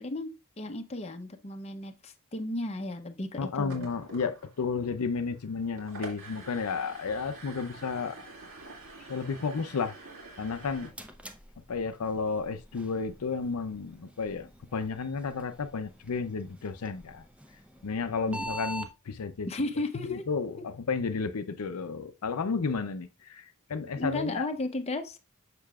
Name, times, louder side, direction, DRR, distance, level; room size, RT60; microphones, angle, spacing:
voice 1, 0.0-3.9 18.3-18.5 19.5-20.2 24.0-25.2, left 2 dB, 30° left, 0.7 m, -34 dB
voice 2, 3.4-8.2 9.1-10.0 10.4-10.9 11.7-17.2 17.8-19.5 19.9-24.5, left 5 dB, 80° left, 0.5 m, -32 dB
sound 1, 3.5-10.9, right 3 dB, 70° right, 2.2 m, -47 dB
sound 2, 10.5-18.9, right 1 dB, 5° right, 0.6 m, -45 dB
6.6 x 6.6 x 2.4 m
head